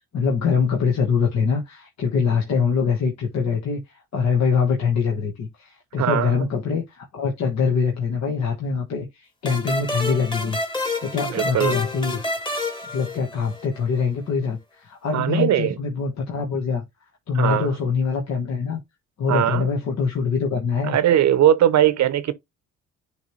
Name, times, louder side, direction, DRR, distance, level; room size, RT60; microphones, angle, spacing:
voice 1, 0.0-12.2 12.9-16.8 17.3-18.8 19.2-21.0, left 5 dB, 60° left, 1.5 m, -24 dB
voice 2, 6.0-6.4 11.3-11.8 15.1-15.8 17.3-17.7 19.3-19.7 20.8-22.3, right 11 dB, 65° right, 0.8 m, -19 dB
sound 1, 9.5-13.8, left 2 dB, 15° left, 1.8 m, -29 dB
10.0 x 3.4 x 3.2 m
cardioid pair, 90°, 30 cm